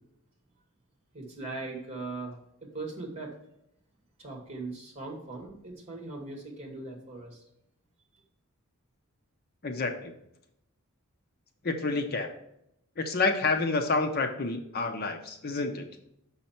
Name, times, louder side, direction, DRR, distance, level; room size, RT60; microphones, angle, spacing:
voice 1, 1.1-3.4 4.2-7.4 8.1-8.2, right 3 dB, 30° right, 0 dB, 1.8 m, -40 dB
voice 2, 9.6-10.1 11.6-12.3 13.0-15.9, left 3 dB, 45° left, 6 dB, 0.6 m, -29 dB
6.5 x 5.6 x 4.3 m, 0.76 s
head